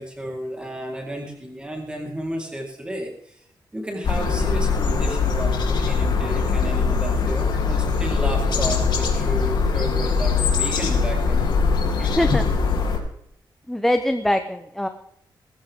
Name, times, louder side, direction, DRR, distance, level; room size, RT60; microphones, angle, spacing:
voice 1, 0.0-3.4 3.7-11.5, equal, 10° right, 0 dB, 4.1 m, -32 dB
sound 1, 4.0-13.0, left 5 dB, 75° left, 3.3 m, -21 dB
voice 2, 12.0-12.4 13.7-14.9, left 1 dB, 5° left, 7 dB, 0.8 m, -23 dB
19.5 x 14.5 x 3.7 m, 0.72 s
wide cardioid pair, 180°, 8 cm